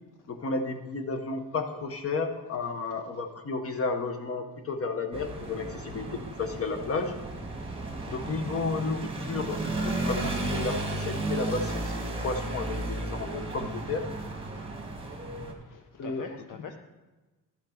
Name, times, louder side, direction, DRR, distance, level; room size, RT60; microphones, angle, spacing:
voice 1, 0.3-6.1 6.4-7.2 8.1-9.6 9.8-14.0 16.0-16.3, left 3 dB, 40° left, 6 dB, 0.9 m, -32 dB
sound 1, 5.1-15.5, right 2 dB, 15° right, 1.2 m, -34 dB
voice 2, 14.6-16.8, left 7 dB, 55° left, 5 dB, 0.6 m, -46 dB
12.0 x 5.9 x 4.4 m, 1.2 s
wide cardioid pair, 170°, 38 cm